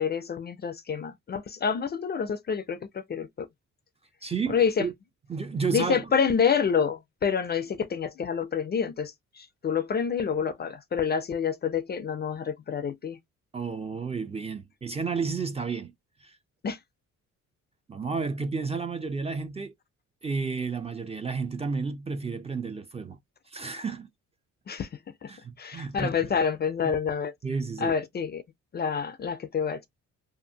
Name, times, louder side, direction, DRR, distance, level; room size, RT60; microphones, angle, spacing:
voice 1, 0.0-3.5 4.5-4.9 5.7-13.2 16.6-16.8 24.7-24.9 25.2-25.3 25.6-27.3 27.8-28.4 28.7-29.9, left 6 dB, 35° left, 0.4 m, -28 dB
voice 2, 4.2-4.9 5.3-6.1 13.5-15.9 16.2-16.3 17.9-19.7 20.2-23.2 23.5-24.1 25.3-26.3 26.8-26.9 27.4-27.9, right 5 dB, 20° right, 0.5 m, -31 dB
2.6 x 2.4 x 2.7 m
cardioid pair, 90°, 30 cm